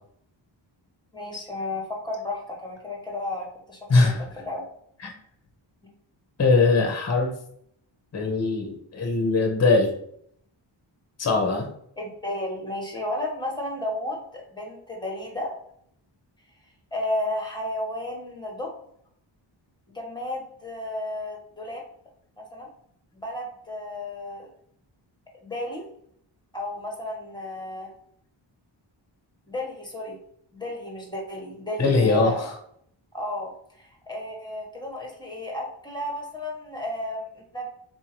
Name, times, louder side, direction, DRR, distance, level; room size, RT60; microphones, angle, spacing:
voice 1, 1.1-4.6 12.0-15.5 16.9-18.7 19.9-21.8 22.4-22.7 23.1-24.5 25.4-25.8 26.5-27.9 29.5-30.2 30.5-32.5 33.1-33.5 33.8-37.7, left 1 dB, 10° left, -1 dB, 1.1 m, -33 dB
voice 2, 3.9-4.2 5.0-5.1 6.4-7.3 8.1-9.9 11.2-11.7 31.8-32.3, left 3 dB, 35° left, 3 dB, 0.7 m, -21 dB
4.0 x 2.7 x 3.0 m, 0.67 s
wide cardioid pair, 125°, 47 cm